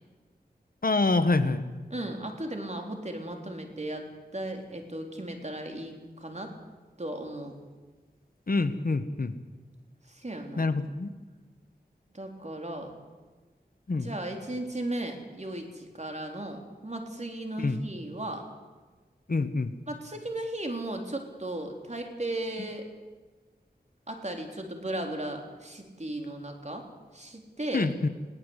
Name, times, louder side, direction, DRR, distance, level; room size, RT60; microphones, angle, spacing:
voice 1, 0.8-1.6 8.5-9.3 10.6-11.1 13.9-14.1 17.6-17.8 19.3-19.7 27.7-28.1, left 3 dB, 60° left, 11 dB, 1.3 m, -26 dB
voice 2, 1.9-4.1 4.3-6.5 7.0-7.5 10.1-10.7 12.1-12.9 13.9-18.4 19.9-22.9 24.1-26.9 27.1-27.9, right 1 dB, 40° right, 3 dB, 3.8 m, -36 dB
21.0 x 17.0 x 8.2 m, 1.3 s
wide cardioid pair, 45°, 17 cm